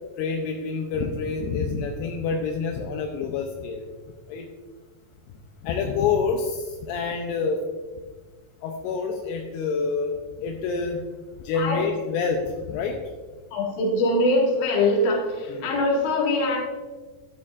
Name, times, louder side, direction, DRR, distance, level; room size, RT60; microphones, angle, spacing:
voice 1, 0.2-3.9 4.3-4.5 5.6-7.6 8.6-11.0 11.4-13.0 15.5-15.7, left 5 dB, 80° left, 2 dB, 2.7 m, -27 dB
voice 2, 13.5-16.6, left 1 dB, 55° left, -2 dB, 3.1 m, -22 dB
12.5 x 9.9 x 2.5 m, 1.4 s
omnidirectional pair, 4.8 m